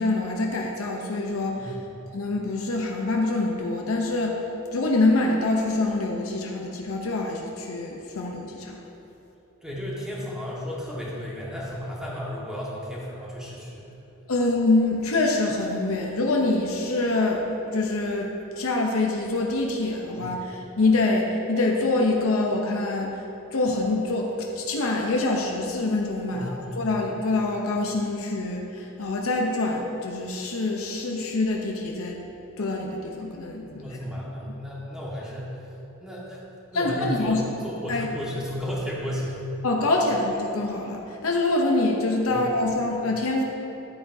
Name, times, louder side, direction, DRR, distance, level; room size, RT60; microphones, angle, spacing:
voice 1, 0.0-1.7 2.1-4.4 4.7-8.8 14.3-23.2 23.5-32.2 32.6-33.8 36.7-37.4 37.9-38.1 39.6-43.4, left 2 dB, 75° left, 0 dB, 0.7 m, -25 dB
voice 2, 9.6-13.9 20.2-20.3 26.3-27.0 33.6-35.7 36.0-36.4 36.7-39.5 42.3-42.6, equal, 5° right, -6 dB, 1.5 m, -34 dB
11.5 x 8.6 x 2.7 m, 3.0 s
head